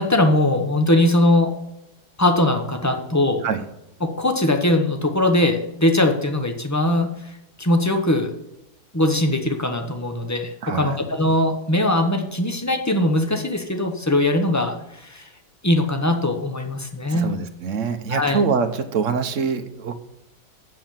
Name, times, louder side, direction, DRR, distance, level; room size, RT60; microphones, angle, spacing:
voice 1, 0.0-1.5 2.2-3.4 4.0-8.3 8.9-15.3 15.6-17.3 18.1-18.4, left 1 dB, 15° left, 5 dB, 0.7 m, -21 dB
voice 2, 10.6-11.0 17.1-20.0, right 5 dB, 55° right, 8 dB, 1.1 m, -24 dB
7.8 x 7.6 x 7.3 m, 0.85 s
omnidirectional pair, 1.9 m